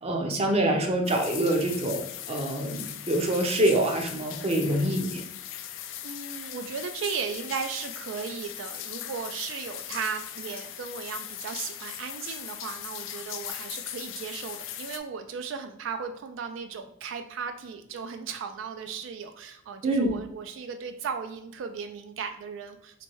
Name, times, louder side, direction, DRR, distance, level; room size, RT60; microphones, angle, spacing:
voice 1, 0.0-5.2 19.8-20.1, right 1 dB, 30° right, 3 dB, 0.6 m, -26 dB
sound 1, 1.0-15.0, left 11 dB, 85° left, 0.4 m, -39 dB
voice 2, 6.0-23.0, right 6 dB, 80° right, 7 dB, 0.3 m, -36 dB
4.3 x 2.6 x 2.9 m, 0.72 s
head